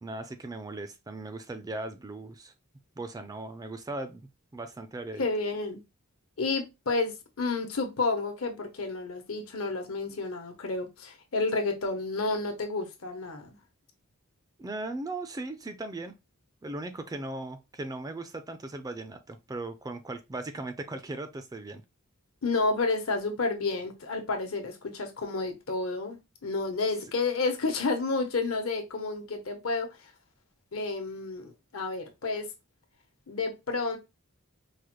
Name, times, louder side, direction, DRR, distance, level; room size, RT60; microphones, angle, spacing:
voice 1, 0.0-2.5 3.0-5.2 14.6-16.1 16.6-21.8, right 2 dB, 20° right, 0.4 m, -38 dB
voice 2, 5.2-5.8 6.4-13.6 22.4-29.9 30.7-32.5 33.3-34.0, left 3 dB, 75° left, 1.0 m, -30 dB
4.8 x 2.1 x 3.0 m
head